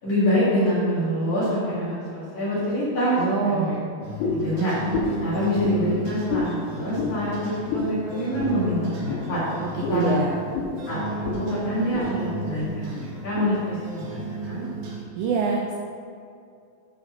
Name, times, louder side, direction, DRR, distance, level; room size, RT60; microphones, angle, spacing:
voice 1, 0.0-3.8 4.3-4.8 5.2-9.4 9.9-10.3 10.9-11.0 11.3-14.7, equal, 50° left, -11 dB, 2.4 m, -25 dB
voice 2, 3.1-3.8 9.6-10.3 15.1-15.7, right 5 dB, 90° right, 1 dB, 2.5 m, -25 dB
sound 1, 4.0-15.0, right 1 dB, 75° right, 3.8 m, -34 dB
sound 2, 4.2-4.5 4.9-5.2 5.6-5.8 6.3-6.5 6.9-7.2 7.7-7.9 8.4-8.6 9.1-9.2 9.8-10.0 10.5-10.7 11.2-11.4 11.7-12.1 12.6-12.7 13.4-13.5, left 4 dB, 85° left, 3.7 m, -28 dB
9.8 x 4.2 x 5.9 m, 2.4 s
omnidirectional pair, 5.9 m